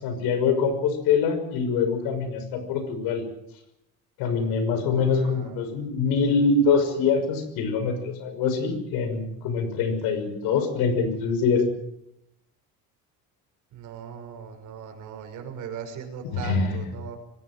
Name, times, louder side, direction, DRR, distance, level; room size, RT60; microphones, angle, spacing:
voice 1, 0.0-3.2 4.2-11.6 16.2-16.8, left 5 dB, 85° left, 9 dB, 6.2 m, -24 dB
voice 2, 4.9-5.6 13.7-17.2, right 7 dB, 55° right, 5 dB, 5.9 m, -39 dB
24.0 x 18.5 x 7.6 m, 0.82 s
cardioid pair, 160°, 36 cm